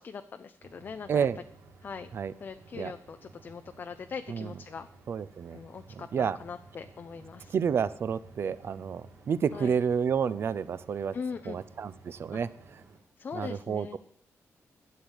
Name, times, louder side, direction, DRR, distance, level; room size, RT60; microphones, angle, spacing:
voice 1, 0.0-1.3 1.8-2.1 2.4-4.9 5.5-7.5 9.5-9.8 11.1-11.6 12.3-12.4 13.2-14.0, left 5 dB, 40° left, 8 dB, 0.5 m, -41 dB
sound 1, 0.6-13.0, right 3 dB, 90° right, 3.4 m, -54 dB
voice 2, 5.1-5.6 6.1-6.4 7.5-11.1 11.5-12.5 13.3-14.0, right 7 dB, 50° right, 16 dB, 0.6 m, -29 dB
12.0 x 7.9 x 8.1 m, 0.66 s
wide cardioid pair, 170°, 5 cm